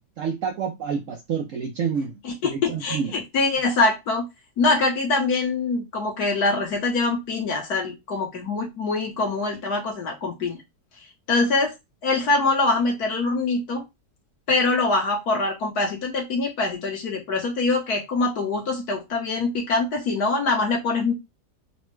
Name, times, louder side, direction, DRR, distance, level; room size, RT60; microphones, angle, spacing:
voice 1, 0.0-3.1, right 6 dB, 70° right, 4 dB, 0.7 m, -29 dB
voice 2, 2.2-4.3 4.6-10.6 11.3-11.7 12.0-13.8 14.5-21.1, left 3 dB, 65° left, 0 dB, 1.7 m, -24 dB
4.0 x 2.2 x 3.0 m, 0.20 s
omnidirectional pair, 1.8 m